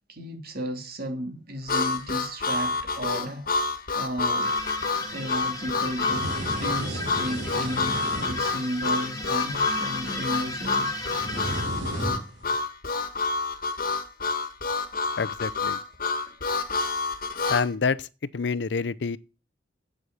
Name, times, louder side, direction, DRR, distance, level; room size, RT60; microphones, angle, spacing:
voice 1, 0.1-3.5 3.9-4.5 5.1-11.0 16.3-16.4, equal, 60° right, 2.9 m, -34 dB
Harmonica, 1.7-17.7, left 4 dB, 55° left, 1.5 m, -28 dB
sound 1, 4.4-11.6, left 2 dB, 20° left, 2.5 m, -36 dB
sound 2, 5.1-12.6, right 1 dB, 90° right, 4.4 m, -36 dB
voice 2, 15.2-15.8 17.5-18.1 18.3-19.2, left 5 dB, 70° left, 0.6 m, -27 dB
8.4 x 7.8 x 8.2 m
head